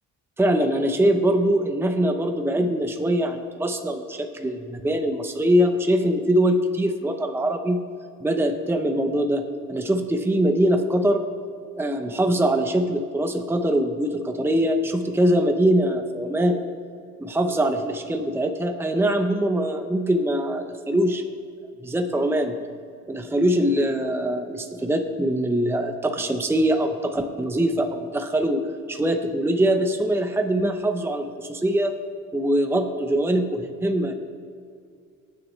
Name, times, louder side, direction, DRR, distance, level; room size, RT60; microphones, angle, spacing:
voice 1, 0.4-7.8 8.2-11.2 11.8-16.6 17.2-21.2 21.8-22.5 23.1-28.6 28.9-31.9 32.3-34.1, right 1 dB, 10° right, 6 dB, 0.7 m, -23 dB
19.5 x 6.6 x 3.2 m, 2.3 s
cardioid pair, 90°, 30 cm